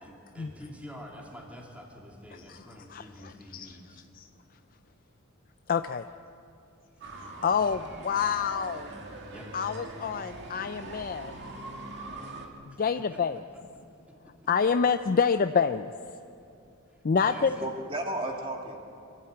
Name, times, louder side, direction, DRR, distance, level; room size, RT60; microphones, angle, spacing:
voice 1, 0.0-4.0 9.3-9.5 12.7-12.8 13.1-13.2 16.9-17.6, equal, 5° right, -1 dB, 2.4 m, -47 dB
voice 2, 2.9-3.8 4.1-4.3 5.7-6.0 7.4-8.9 9.5-11.3 12.7-13.4 14.5-15.9 17.0-17.5, left 6 dB, 40° left, 10 dB, 0.4 m, -27 dB
sound 1, 7.0-12.5, right 2 dB, 55° right, 2.1 m, -42 dB
voice 3, 17.3-18.8, right 1 dB, 25° right, 1 dB, 2.6 m, -34 dB
24.5 x 14.0 x 8.8 m, 2.6 s
head